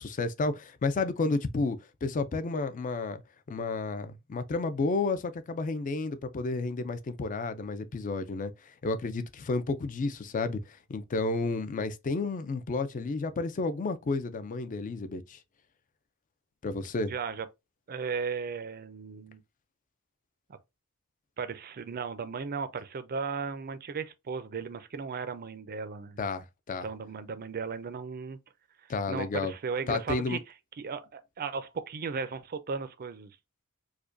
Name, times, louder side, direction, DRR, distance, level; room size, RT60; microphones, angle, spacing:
voice 1, 0.0-3.2 3.5-15.4 16.6-17.1 26.2-26.9 28.9-29.5 29.9-30.4, left 3 dB, 35° left, 0.4 m, -31 dB
voice 2, 17.1-17.5 17.9-19.4 21.4-26.2 26.8-28.4 29.1-30.4 30.8-33.3, right 5 dB, 45° right, 0.5 m, -36 dB
4.8 x 2.2 x 2.5 m
head